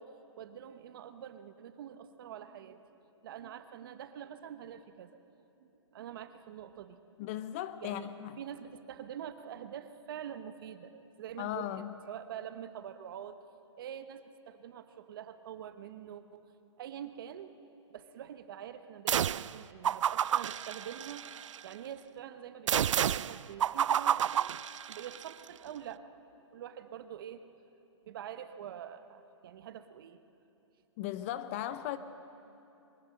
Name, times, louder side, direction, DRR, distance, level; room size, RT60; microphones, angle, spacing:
voice 1, 0.0-2.9 3.2-5.1 5.6-7.0 7.8-8.1 8.4-11.7 12.1-13.4 13.8-16.4 16.7-17.6 17.9-21.3 21.6-24.5 24.9-26.1 26.5-27.5 28.1-30.2, right 9 dB, 45° right, 1.0 m, -45 dB
voice 2, 7.2-8.3 11.4-11.9 31.0-32.0, left 12 dB, 25° left, 0.5 m, -37 dB
sound 1, 19.1-19.5 19.8-21.6 22.7-25.3, right 9 dB, 80° right, 0.4 m, -30 dB
22.0 x 15.5 x 7.7 m
hypercardioid pair, 155°, 16 cm